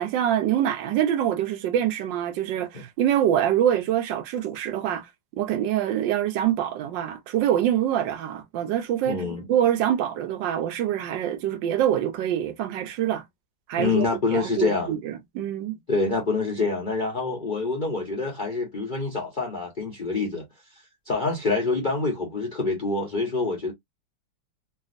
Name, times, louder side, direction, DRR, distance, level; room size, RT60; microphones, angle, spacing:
voice 1, 0.0-5.1 5.4-9.2 9.5-13.2 13.7-14.1 14.3-15.8, right 10 dB, 75° right, 1.2 m, -25 dB
voice 2, 9.1-9.5 13.8-14.9 15.9-20.4 21.1-23.7, left 3 dB, 80° left, 0.4 m, -26 dB
3.3 x 2.4 x 2.5 m
omnidirectional pair, 2.2 m